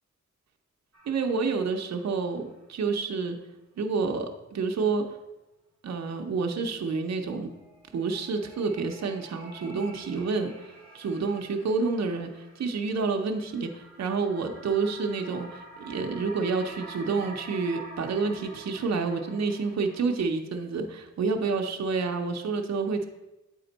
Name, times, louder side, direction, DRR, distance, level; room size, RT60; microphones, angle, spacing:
sound 1, 0.9-2.5 2.8-2.9 7.3-20.2, right 2 dB, 5° left, 1.7 m, -48 dB
voice 1, 1.1-3.4 3.8-5.2 5.8-7.5 7.9-23.1, right 4 dB, 65° right, 4 dB, 0.7 m, -29 dB
8.3 x 4.3 x 3.9 m, 1.0 s
wide cardioid pair, 150°, 29 cm